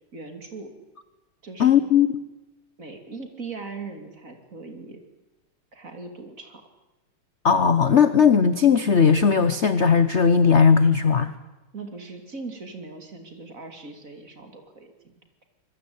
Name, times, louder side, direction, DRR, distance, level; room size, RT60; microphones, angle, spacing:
voice 1, 0.1-0.7 1.4-1.9 2.8-5.0 5.7-6.6 11.7-15.1, right 3 dB, 35° right, 5 dB, 3.2 m, -39 dB
voice 2, 1.6-2.1 7.4-11.3, left 6 dB, 55° left, 12 dB, 0.8 m, -17 dB
25.5 x 21.0 x 8.7 m, 1.1 s
omnidirectional pair, 2.4 m